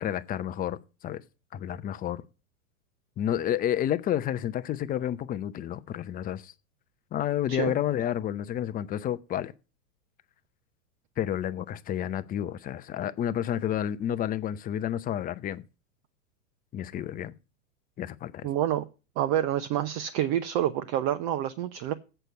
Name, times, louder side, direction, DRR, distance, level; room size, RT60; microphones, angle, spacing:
voice 1, 0.0-1.2 1.5-2.2 3.2-6.5 7.1-9.5 11.2-15.6 16.7-17.3 18.0-18.5, left 10 dB, 20° left, 0.6 m, -30 dB
voice 2, 18.4-18.8 19.2-21.9, right 11 dB, 45° right, 0.9 m, -28 dB
7.9 x 6.6 x 8.0 m
hypercardioid pair, 115°, 41 cm